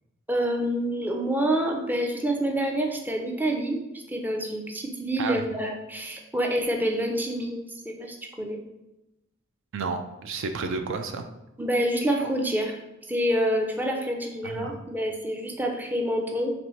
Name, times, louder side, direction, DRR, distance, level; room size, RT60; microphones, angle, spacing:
voice 1, 0.3-7.6 7.9-8.6 11.6-12.8 13.1-16.5, right 1 dB, 10° right, 1 dB, 0.5 m, -27 dB
voice 2, 9.7-11.3 14.4-14.7, right 4 dB, 65° right, 7 dB, 0.4 m, -31 dB
4.0 x 3.4 x 3.1 m, 0.93 s
head